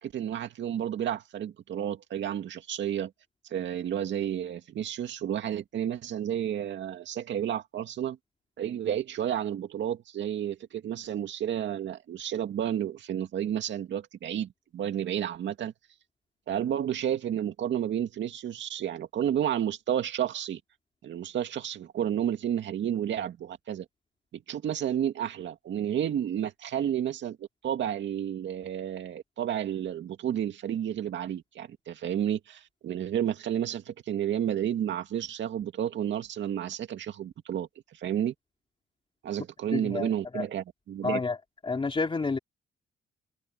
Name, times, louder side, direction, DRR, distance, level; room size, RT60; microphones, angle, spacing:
voice 1, 0.0-3.1 3.5-8.2 8.6-15.7 16.5-20.6 21.0-23.9 24.3-27.4 27.6-38.3 39.2-41.2, right 10 dB, 65° right, 2.2 m, -31 dB
voice 2, 39.7-40.4 41.0-41.4 41.6-42.4, left 4 dB, 25° left, 3.3 m, -29 dB
cardioid pair, 90°, 20 cm